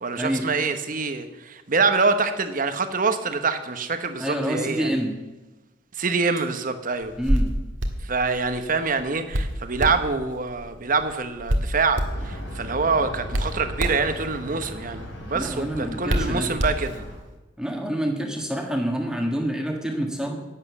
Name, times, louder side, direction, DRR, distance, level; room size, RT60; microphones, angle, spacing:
voice 1, 0.0-4.9 6.0-7.2 8.0-17.1, right 4 dB, 45° right, 9 dB, 1.0 m, -25 dB
voice 2, 4.2-5.2 7.2-7.5 15.3-16.5 17.6-20.3, equal, 5° right, 2 dB, 1.6 m, -27 dB
Hands, 7.0-17.3, equal, 75° right, 1.6 m, -29 dB
sound 1, 12.1-17.2, equal, 65° left, 3.4 m, -37 dB
11.0 x 8.9 x 7.1 m, 1.1 s
head